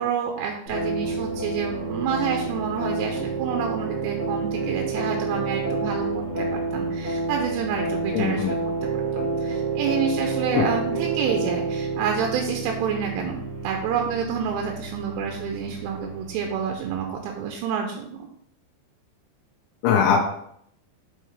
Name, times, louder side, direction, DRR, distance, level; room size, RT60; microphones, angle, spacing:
voice 1, 0.0-8.6 8.9-18.3, right 7 dB, 80° right, 2 dB, 2.6 m, -28 dB
sound 1, 0.7-17.4, right 3 dB, 60° right, 1.4 m, -29 dB
voice 2, 8.1-8.5 10.5-10.6 19.8-20.2, left 7 dB, 85° left, -1 dB, 3.0 m, -20 dB
7.8 x 4.6 x 3.2 m, 0.68 s
omnidirectional pair, 5.4 m